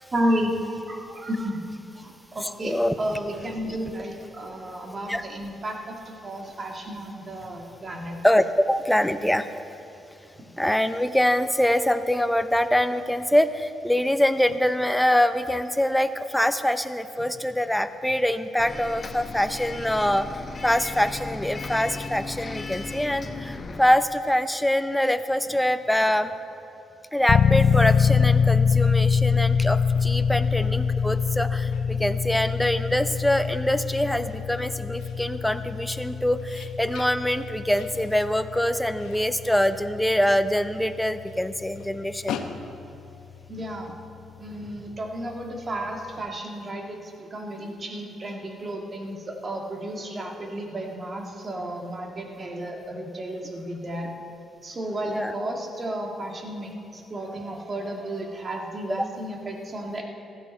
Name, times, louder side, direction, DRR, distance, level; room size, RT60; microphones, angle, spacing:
voice 1, 0.1-1.6 2.0-8.2 10.3-10.4 43.5-43.9 44.4-54.2 54.6-60.0, right 1 dB, 35° right, 1 dB, 1.9 m, -32 dB
voice 2, 2.4-2.9 5.1-5.2 8.2-9.5 10.6-26.3 27.1-42.4 55.1-55.3, left 1 dB, 5° left, 10 dB, 0.6 m, -24 dB
Bus, 18.6-23.8, left 3 dB, 30° left, 0.9 m, -36 dB
sound 1, 27.3-44.0, left 6 dB, 50° left, 0.5 m, -25 dB
sound 2, 29.2-43.7, left 7 dB, 85° left, 0.8 m, -44 dB
15.5 x 13.0 x 4.3 m, 3.0 s
cardioid pair, 90°, 0 cm